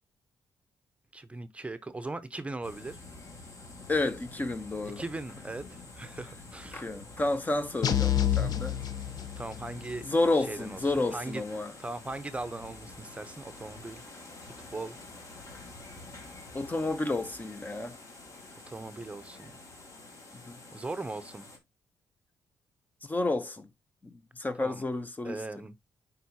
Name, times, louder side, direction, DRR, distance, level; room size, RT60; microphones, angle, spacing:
voice 1, 1.1-3.0 4.8-6.9 9.4-10.1 10.4-11.4 11.8-14.0 14.4-15.0 18.7-19.6 20.7-21.5 24.6-24.8 25.2-25.8, right 2 dB, 20° right, 0.7 m, -39 dB
sound 1, 2.6-21.6, left 2 dB, 45° left, 2.3 m, -48 dB
voice 2, 3.9-5.0 6.7-8.8 10.1-11.7 16.5-17.9 20.5-20.6 23.1-23.7 24.4-25.4, left 2 dB, 25° left, 0.8 m, -30 dB
sound 2, 7.8-9.7, left 10 dB, 65° left, 0.8 m, -28 dB
9.2 x 4.0 x 2.8 m
cardioid pair, 80°, 7 cm